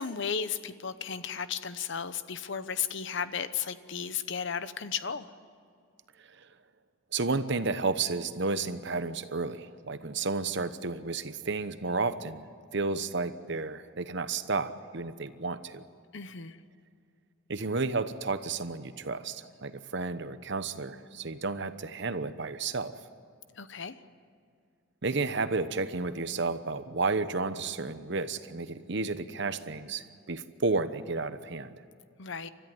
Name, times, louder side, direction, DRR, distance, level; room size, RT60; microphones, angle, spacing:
voice 1, 0.0-5.3 16.1-16.6 23.6-24.0 32.2-32.5, left 7 dB, 60° left, 13 dB, 0.9 m, -34 dB
voice 2, 7.1-12.4 12.7-15.8 17.5-23.0 25.0-31.7, right 3 dB, 60° right, 12 dB, 1.0 m, -32 dB
30.0 x 13.5 x 9.6 m, 2.3 s
head